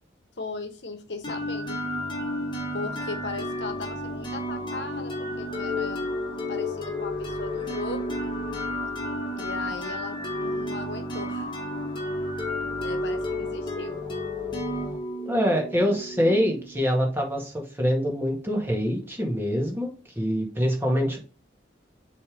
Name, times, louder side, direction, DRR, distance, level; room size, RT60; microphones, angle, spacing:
voice 1, 0.4-1.8 2.5-8.1 9.4-11.5 12.8-14.0, left 3 dB, 70° left, 7 dB, 1.2 m, -37 dB
sound 1, 1.2-16.9, left 1 dB, 30° left, 1.6 m, -31 dB
voice 2, 15.3-19.9 20.2-21.2, equal, 15° right, 0 dB, 2.1 m, -25 dB
7.0 x 3.5 x 5.4 m, 0.35 s
head